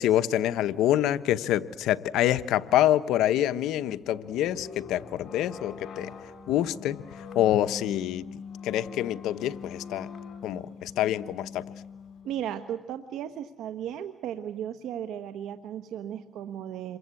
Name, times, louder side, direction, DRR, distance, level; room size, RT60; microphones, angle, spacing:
voice 1, 0.0-6.1 6.5-8.3 8.6-10.1 10.4-11.6, left 12 dB, 90° left, 13 dB, 1.0 m, -26 dB
sound 1, 3.8-12.5, left 6 dB, 60° left, 4.0 m, -43 dB
voice 2, 12.2-17.0, right 10 dB, 85° right, 8 dB, 1.2 m, -35 dB
28.0 x 23.5 x 8.4 m, 0.97 s
cardioid pair, 90°, 0 cm